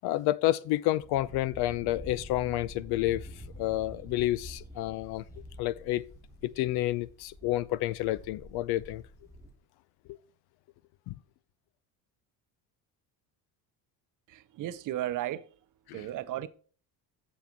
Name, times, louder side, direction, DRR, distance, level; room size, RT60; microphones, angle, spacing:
voice 1, 0.0-3.3 3.6-5.2 5.6-6.0 6.4-9.0 10.1-10.2 11.1-11.2, left 16 dB, 75° left, 0.6 m, -29 dB
sound 1, 1.0-9.6, equal, 10° left, 2.5 m, -47 dB
voice 2, 14.3-15.6 15.9-16.5, right 13 dB, 55° right, 0.7 m, -35 dB
7.2 x 7.2 x 4.5 m
cardioid pair, 135°, 39 cm